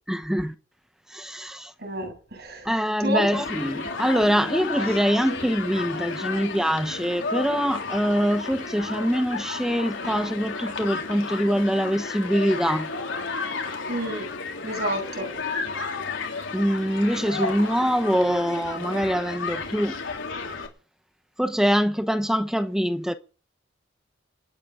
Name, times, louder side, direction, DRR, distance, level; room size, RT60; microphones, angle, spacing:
voice 1, 0.1-0.5 1.1-1.7 2.6-12.9 16.5-20.0 21.4-23.1, equal, 5° right, 0.9 m, -24 dB
voice 2, 1.8-2.7 3.0-3.2 13.9-14.3 14.6-15.3, right 1 dB, 55° right, 8.0 m, -29 dB
Human group actions, 3.3-20.7, left 4 dB, 85° left, 3.6 m, -32 dB
27.5 x 11.0 x 3.8 m
head